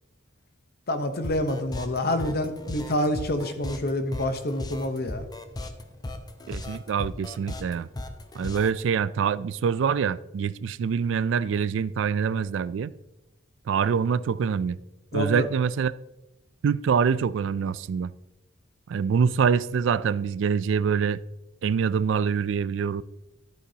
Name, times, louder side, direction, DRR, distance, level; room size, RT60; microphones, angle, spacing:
voice 1, 0.9-5.3 15.1-15.5, left 1 dB, 50° left, 0.9 m, -27 dB
sound 1, 1.2-8.8, left 1 dB, 20° left, 0.6 m, -36 dB
voice 2, 6.5-7.9 8.4-12.9 13.7-14.8 15.1-15.9 16.6-18.1 18.9-21.2 21.6-23.0, right 6 dB, 65° right, 0.3 m, -25 dB
12.5 x 8.2 x 2.8 m
head